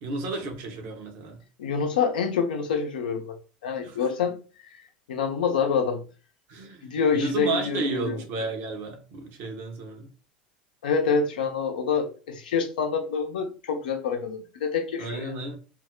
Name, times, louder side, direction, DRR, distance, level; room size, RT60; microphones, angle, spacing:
voice 1, 0.0-1.4 3.8-4.0 6.5-10.1 15.0-15.6, right 2 dB, 55° right, 0.9 m, -32 dB
voice 2, 1.6-3.4 3.6-4.4 5.1-6.0 6.8-8.2 10.8-15.3, left 5 dB, 70° left, 0.6 m, -26 dB
2.5 x 2.1 x 3.7 m
figure-of-eight pair, 75°, 5 cm